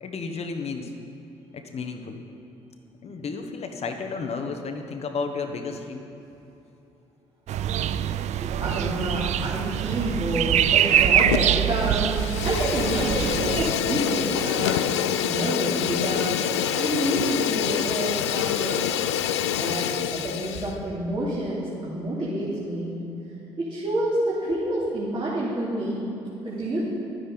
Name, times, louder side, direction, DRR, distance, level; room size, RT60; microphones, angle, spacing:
voice 1, 0.0-0.9 1.5-2.2 3.0-6.1, left 4 dB, 50° left, 5 dB, 1.2 m, -32 dB
sound 1, 7.5-13.7, right 10 dB, 55° right, 0.5 m, -24 dB
voice 2, 8.3-12.2 12.4-14.9 15.3-18.9 19.5-23.0 23.6-26.0 26.4-26.8, right 1 dB, 35° right, -8 dB, 3.0 m, -28 dB
Fire, 11.2-11.7 12.0-20.7, left 10 dB, 90° left, 0.4 m, -26 dB
11.0 x 10.0 x 5.2 m, 3.0 s
hypercardioid pair, 50°, 14 cm